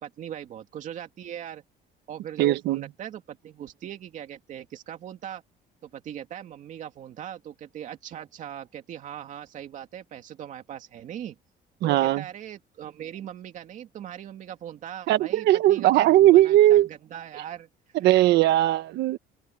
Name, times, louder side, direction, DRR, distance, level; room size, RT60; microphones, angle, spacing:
voice 1, 0.0-1.6 2.1-5.4 5.8-11.4 11.8-17.7, right 10 dB, 45° right, 2.5 m, -40 dB
voice 2, 2.4-2.8 11.8-12.2 15.1-16.9 18.0-19.2, right 14 dB, 70° right, 1.3 m, -19 dB
cardioid pair, 175°, 18 cm